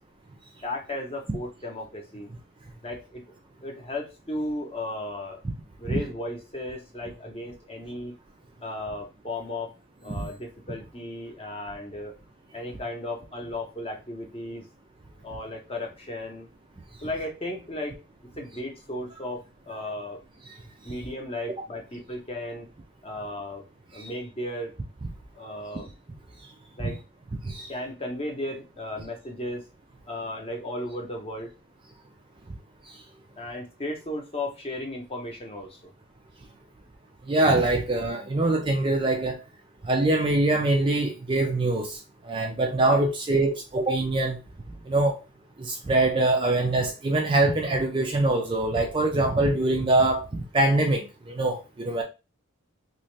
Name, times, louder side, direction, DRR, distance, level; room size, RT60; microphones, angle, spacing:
voice 1, 0.6-2.3 2.8-3.2 3.6-5.4 5.8-8.1 8.6-9.7 10.0-12.1 12.5-14.6 15.2-16.5 17.0-18.0 18.4-20.2 20.8-22.7 23.0-23.6 23.9-24.8 25.3-25.9 26.8-27.0 27.7-29.6 30.1-31.5 33.4-35.9 42.9-43.0 52.0-52.1, left 1 dB, 25° left, 0.8 m, -35 dB
voice 2, 37.3-39.4 39.9-42.0 42.3-44.4 44.9-45.2 45.6-52.0, right 2 dB, 25° right, 0.4 m, -23 dB
2.9 x 2.7 x 3.2 m
head